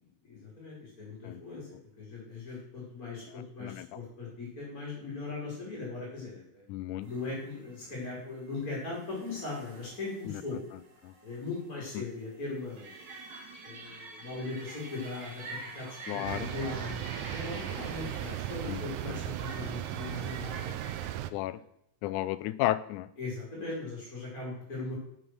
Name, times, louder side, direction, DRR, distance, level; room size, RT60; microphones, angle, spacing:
voice 1, 0.2-1.7 2.0-6.6 7.0-10.6 11.2-12.9 13.6-20.7 21.5-21.6 23.2-24.9, left 3 dB, 25° left, -5 dB, 3.8 m, -39 dB
voice 2, 6.7-7.1 11.0-11.1 12.0-12.1 16.1-16.5 18.7-18.8 21.3-21.6 22.0-23.1, left 15 dB, 80° left, 15 dB, 1.8 m, -32 dB
sound 1, 7.0-21.1, right 3 dB, 60° right, 3.2 m, -47 dB
sound 2, 16.3-21.3, right 13 dB, 80° right, 1.7 m, -37 dB
9.7 x 7.0 x 6.2 m, 0.74 s
omnidirectional pair, 4.0 m